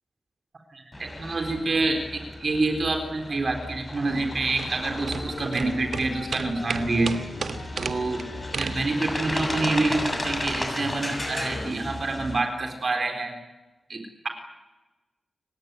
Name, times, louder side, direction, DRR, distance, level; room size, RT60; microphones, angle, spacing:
voice 1, 0.7-7.2 7.8-8.2 8.5-13.3 13.9-14.3, right 3 dB, 55° right, 4 dB, 3.9 m, -27 dB
sound 1, 0.9-12.4, left 1 dB, 20° left, 7.3 m, -34 dB
sound 2, 4.1-9.4, right 5 dB, 75° right, 1.4 m, -35 dB
sound 3, 5.0-11.7, left 4 dB, 75° left, 3.3 m, -41 dB
29.0 x 17.0 x 9.5 m, 1.1 s
wide cardioid pair, 80°, 0 cm